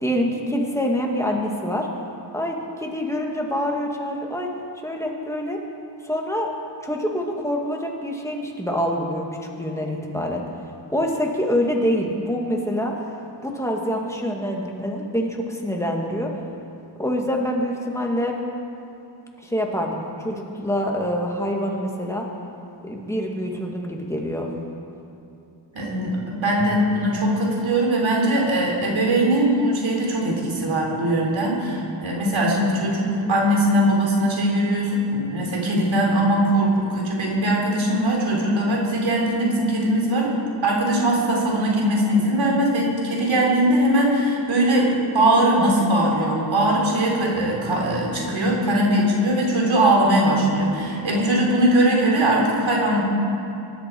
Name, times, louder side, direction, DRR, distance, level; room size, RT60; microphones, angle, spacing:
voice 1, 0.0-1.9 2.3-4.5 4.8-5.6 6.0-6.5 6.8-9.3 9.6-10.4 10.9-16.3 17.0-18.4 19.4-22.3 22.8-24.5, equal, 5° left, 0 dB, 2.2 m, -25 dB
voice 2, 25.7-40.3 40.6-53.0, right 1 dB, 80° right, -2 dB, 3.7 m, -20 dB
23.0 x 12.0 x 4.8 m, 2.8 s
wide cardioid pair, 105°, 45 cm